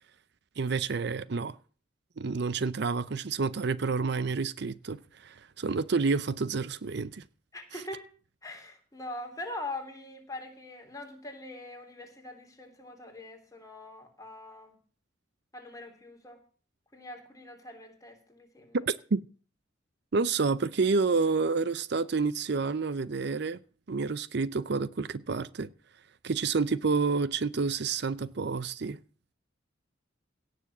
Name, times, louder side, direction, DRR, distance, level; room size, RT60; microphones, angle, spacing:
voice 1, 0.6-1.6 2.2-7.2 18.9-19.2 20.1-23.6 23.9-25.7 26.2-29.0, right 4 dB, 60° right, 0.6 m, -29 dB
voice 2, 7.5-8.1 8.4-14.8 15.5-16.4 16.9-18.8, left 2 dB, 20° left, 3.3 m, -43 dB
17.5 x 6.9 x 7.1 m
head